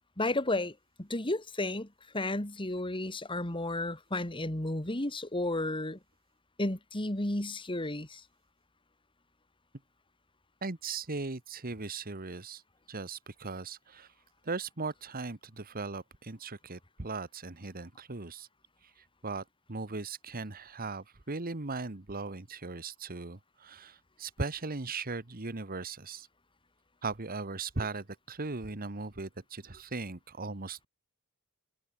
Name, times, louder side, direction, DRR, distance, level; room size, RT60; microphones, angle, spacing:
voice 1, 0.2-1.9 2.1-6.0 6.6-8.2, left 2 dB, 25° left, 2.5 m, -32 dB
voice 2, 10.6-12.6 12.9-14.1 14.4-18.5 19.2-26.3 27.0-30.9, right 3 dB, 40° right, 1.5 m, -38 dB
head